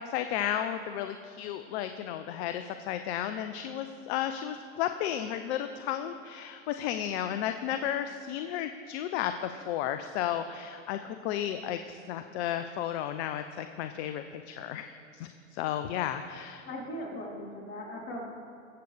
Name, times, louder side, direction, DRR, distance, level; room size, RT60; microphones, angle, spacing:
voice 1, 0.1-16.6, left 10 dB, 55° left, 8 dB, 0.6 m, -33 dB
voice 2, 16.7-18.2, left 1 dB, 30° left, -3 dB, 3.4 m, -39 dB
22.5 x 7.8 x 3.4 m, 2.5 s
hypercardioid pair, 100°, 39 cm